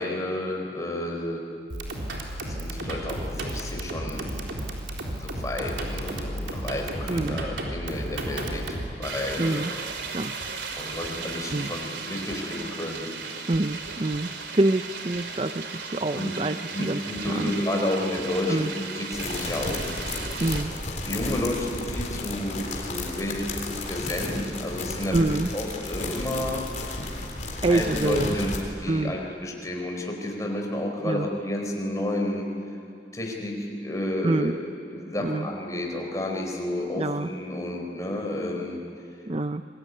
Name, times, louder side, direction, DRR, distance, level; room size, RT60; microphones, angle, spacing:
voice 1, 0.0-1.4 2.5-4.3 5.1-9.7 10.8-13.1 16.1-16.3 16.7-19.9 21.0-25.3 25.5-26.7 27.7-28.5 28.8-32.5 33.1-34.6 34.9-38.8, left 1 dB, 20° left, 0 dB, 4.3 m, -31 dB
sound 1, 1.7-8.9, right 1 dB, 90° right, 4.0 m, -33 dB
voice 2, 7.1-7.4 9.4-9.7 10.1-10.4 11.5-11.7 13.5-17.0 17.3-17.6 18.5-18.7 20.4-20.7 25.1-25.5 27.6-28.4 28.9-29.1 31.0-31.3 34.2-34.6 35.2-35.5 37.0-37.3 39.3-39.6, right 2 dB, 30° right, 10 dB, 0.6 m, -26 dB
sound 2, 9.0-20.6, right 4 dB, 75° right, 2.9 m, -36 dB
sound 3, 19.1-28.6, left 2 dB, 40° left, 3.9 m, -33 dB
26.5 x 22.0 x 9.6 m, 2.5 s
head